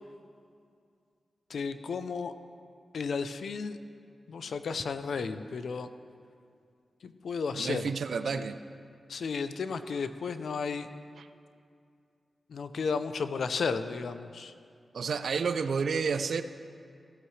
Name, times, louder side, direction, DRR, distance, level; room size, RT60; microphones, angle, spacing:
voice 1, 1.5-2.3 2.9-3.8 4.3-5.9 7.0-7.9 8.3-8.5 9.1-10.9 12.5-14.5, left 5 dB, 80° left, 10 dB, 0.6 m, -33 dB
voice 2, 7.5-8.6 11.2-11.3 14.9-16.4, right 5 dB, 80° right, 11 dB, 0.5 m, -30 dB
16.5 x 12.5 x 3.3 m, 2.4 s
cardioid pair, 80°, 0 cm